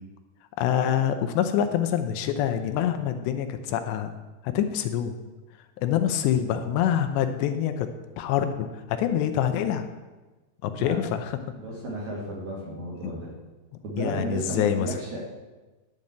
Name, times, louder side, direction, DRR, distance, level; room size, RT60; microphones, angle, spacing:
voice 1, 0.6-4.1 4.4-5.2 5.8-7.9 8.2-9.9 10.6-11.4 13.0-13.2 14.0-14.9, left 9 dB, 80° left, 8 dB, 2.8 m, -26 dB
voice 2, 11.6-13.3 13.8-15.2, right 1 dB, 50° right, -4 dB, 2.7 m, -33 dB
10.5 x 5.3 x 8.6 m, 1.2 s
omnidirectional pair, 5.1 m